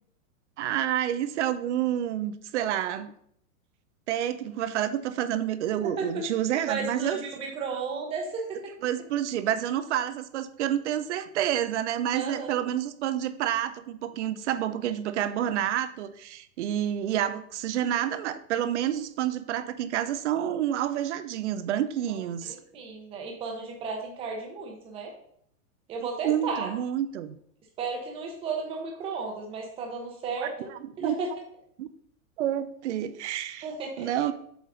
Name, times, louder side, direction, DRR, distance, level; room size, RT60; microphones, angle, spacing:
voice 1, 0.6-3.1 4.1-7.2 8.8-22.6 26.2-27.4 30.7-31.1 31.8-31.9 32.4-33.7 34.0-34.3, right 11 dB, 55° right, 13 dB, 0.6 m, -29 dB
voice 2, 5.8-6.2 6.6-8.7 12.1-12.5 22.1-25.1 25.9-26.7 27.8-30.5 31.0-31.3 33.6-34.1, right 4 dB, 15° right, 2 dB, 0.8 m, -34 dB
7.7 x 4.0 x 3.9 m, 0.68 s
supercardioid pair, 165°, 42 cm